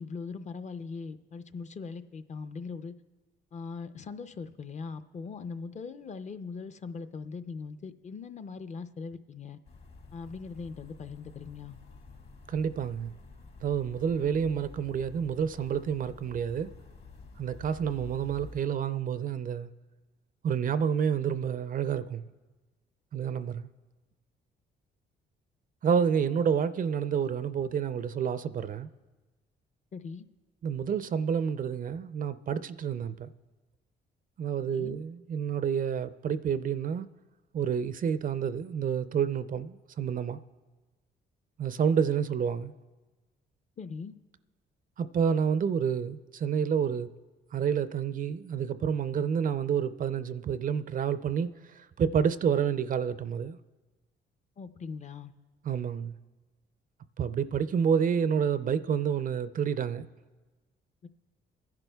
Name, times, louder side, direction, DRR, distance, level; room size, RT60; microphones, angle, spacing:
voice 1, 0.0-2.9 3.5-9.6 10.1-11.8 29.9-30.3 34.7-35.0 43.8-44.2 54.6-55.3 61.0-61.1, left 5 dB, 35° left, 0.5 m, -40 dB
sound 1, 9.6-18.6, left 3 dB, 60° left, 1.6 m, -50 dB
voice 2, 12.5-13.1 13.6-16.7 17.4-19.7 20.4-22.2 23.1-23.7 25.8-28.9 30.6-33.3 34.4-37.1 37.5-40.4 41.6-42.7 45.0-47.1 47.5-51.6 52.0-53.6 55.6-56.2 57.2-60.1, right 7 dB, 45° right, 0.4 m, -29 dB
27.5 x 10.5 x 2.3 m
cardioid pair, 90°, 20 cm